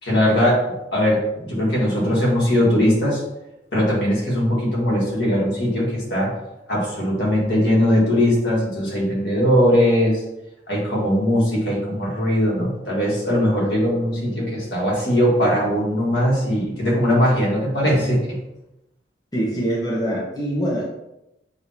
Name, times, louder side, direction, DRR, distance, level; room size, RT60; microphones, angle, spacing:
voice 1, 0.0-0.6 0.9-3.2 3.7-6.3 6.7-10.2 10.7-18.4, equal, 70° left, -4 dB, 1.7 m, -20 dB
voice 2, 19.3-20.8, right 1 dB, 20° left, -6 dB, 0.9 m, -24 dB
6.9 x 2.7 x 2.9 m, 0.90 s
head